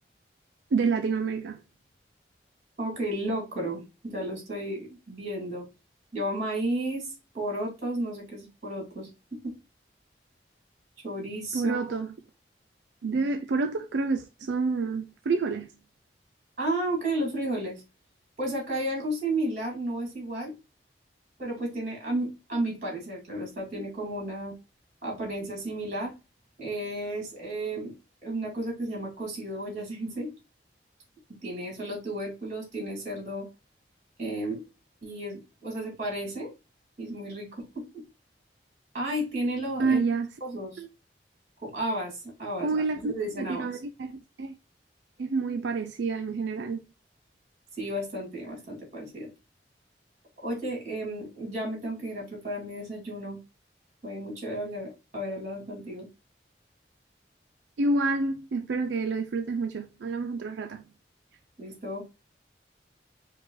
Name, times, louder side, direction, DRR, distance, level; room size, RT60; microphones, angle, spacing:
voice 1, 0.7-1.6 11.5-12.1 13.0-15.8 39.8-40.3 40.8-40.9 42.6-44.5 45.2-46.8 57.8-60.9, right 4 dB, 90° right, 0.4 m, -28 dB
voice 2, 2.8-5.7 6.1-9.5 11.0-11.9 16.6-17.8 18.4-20.5 21.4-24.5 25.0-26.1 26.6-27.9 28.2-30.3 31.4-33.5 34.2-34.6 35.0-36.5 37.0-38.0 38.9-40.0 40.4-40.8 41.6-43.7 47.8-49.3 50.4-53.4 54.0-56.1 61.6-62.0, right 1 dB, 45° right, 2.5 m, -33 dB
4.8 x 2.3 x 3.9 m
head